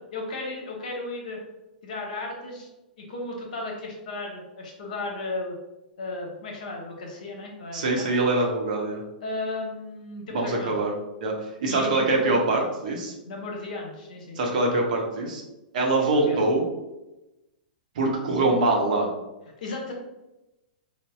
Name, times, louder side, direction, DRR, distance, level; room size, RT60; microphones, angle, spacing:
voice 1, 0.1-1.4 1.8-2.7 3.0-5.6 6.0-8.1 9.2-10.7 11.7-12.5 13.2-14.4 16.1-16.4 19.6-19.9, left 2 dB, 55° left, 0 dB, 0.9 m, -34 dB
voice 2, 7.7-9.0 10.3-10.9 11.2-11.3 11.6-13.1 14.4-15.4 15.7-16.6 17.9-19.1, right 2 dB, 55° right, 0 dB, 0.8 m, -23 dB
5.2 x 2.1 x 2.3 m, 0.99 s
figure-of-eight pair, 105°, 5 cm